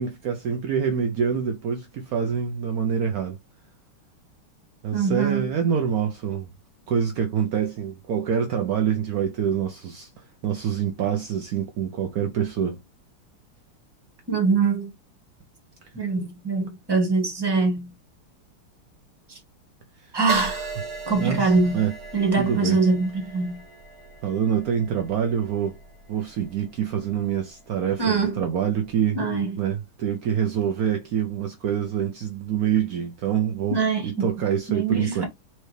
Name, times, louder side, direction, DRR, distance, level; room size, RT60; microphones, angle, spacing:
voice 1, 0.0-3.4 4.8-6.5 6.9-10.1 10.4-12.8 20.0-20.1 21.2-21.9 22.4-22.8 24.2-25.7 26.1-29.2 29.6-35.2, right 8 dB, 80° right, 0.8 m, -26 dB
voice 2, 4.9-5.5 14.3-14.9 15.9-17.9 19.3-19.4 20.1-20.7 21.1-21.8 22.1-23.6 28.0-28.4 29.1-29.6 33.7-34.3 34.7-35.2, right 4 dB, 15° right, 1.1 m, -23 dB
Crash cymbal, 20.3-27.9 28.6-28.9, right 3 dB, 50° right, 1.3 m, -39 dB
4.6 x 2.8 x 3.2 m
omnidirectional pair, 2.4 m